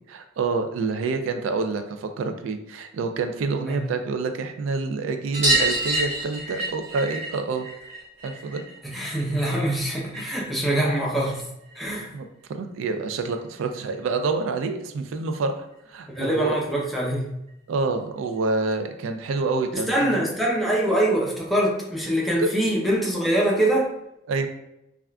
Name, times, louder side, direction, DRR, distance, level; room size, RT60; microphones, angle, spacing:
voice 1, 0.1-7.7 8.2-8.6 12.1-16.6 17.7-20.2 22.4-22.5 24.3-24.5, right 3 dB, 85° right, 7 dB, 0.3 m, -27 dB
sound 1, 5.3-10.4 10.7-11.9 13.2-13.3 13.5-13.6 14.0-14.1 15.3-15.4 15.7-15.8 16.1-16.2 17.5-17.6 18.4-18.5, right 1 dB, 35° right, 1.1 m, -28 dB
voice 2, 8.8-11.5 11.8-12.1 16.1-17.3 19.7-23.9, right 1 dB, ahead, -4 dB, 0.5 m, -24 dB
3.5 x 2.3 x 2.2 m, 0.84 s
head